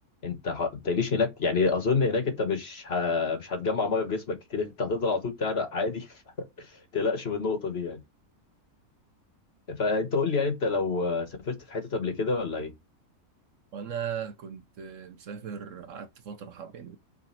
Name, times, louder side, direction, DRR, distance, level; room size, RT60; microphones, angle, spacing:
voice 1, 0.2-6.1 6.4-6.7 6.9-8.0 9.7-12.7, left 4 dB, 45° left, 1.3 m, -28 dB
voice 2, 13.7-17.0, right 8 dB, 60° right, 1.1 m, -38 dB
6.3 x 5.1 x 4.4 m
omnidirectional pair, 1.6 m